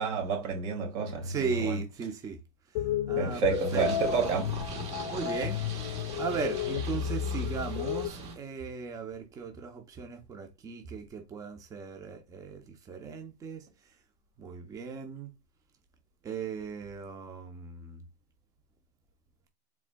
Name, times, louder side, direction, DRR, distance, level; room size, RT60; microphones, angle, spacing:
voice 1, 0.0-1.7 3.2-4.5, right 6 dB, 50° right, 2.5 m, -30 dB
voice 2, 1.2-2.4 3.1-4.2 5.1-5.6 6.2-13.6 14.4-15.3 16.2-18.0, right 5 dB, 15° right, 0.8 m, -37 dB
sound 1, 2.8-8.1, left 10 dB, 50° left, 0.6 m, -32 dB
Purr, 3.5-8.4, right 3 dB, 30° right, 1.5 m, -41 dB
4.7 x 3.6 x 2.3 m
supercardioid pair, 140°, 20 cm